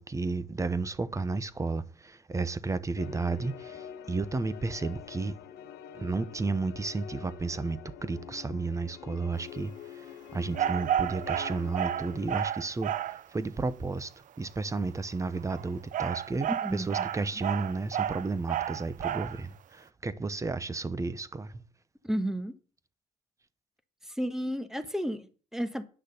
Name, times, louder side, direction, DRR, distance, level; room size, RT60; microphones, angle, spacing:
voice 1, 0.0-5.4 5.9-10.0 10.3-12.9 13.3-14.1 14.4-21.6, right 3 dB, 20° right, 0.9 m, -32 dB
sound 1, 3.0-12.4, left 9 dB, 75° left, 1.2 m, -46 dB
sound 2, 10.5-13.2 15.3-19.4, right 10 dB, 50° right, 0.5 m, -31 dB
voice 2, 16.5-17.4 22.0-22.5 24.0-25.9, equal, 5° right, 1.4 m, -33 dB
10.0 x 6.4 x 6.9 m
cardioid pair, 110°, 17 cm